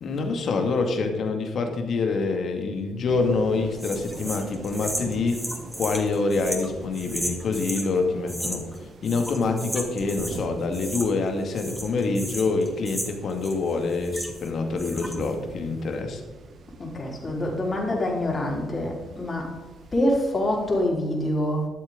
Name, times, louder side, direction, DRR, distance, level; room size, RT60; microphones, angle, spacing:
voice 1, 0.0-5.4 5.7-16.2, left 3 dB, 50° left, 5 dB, 2.2 m, -26 dB
sound 1, 3.1-20.8, right 4 dB, 50° right, 1.3 m, -44 dB
sound 2, 3.8-7.9 8.3-8.8 9.0-10.4 10.7-11.3 11.5-14.5 14.8-15.3, equal, 5° right, 3.0 m, -35 dB
voice 2, 16.8-19.6 19.9-21.7, left 1 dB, 30° left, -2 dB, 4.4 m, -26 dB
13.0 x 12.5 x 3.8 m, 1.2 s
figure-of-eight pair, 45°, 0 cm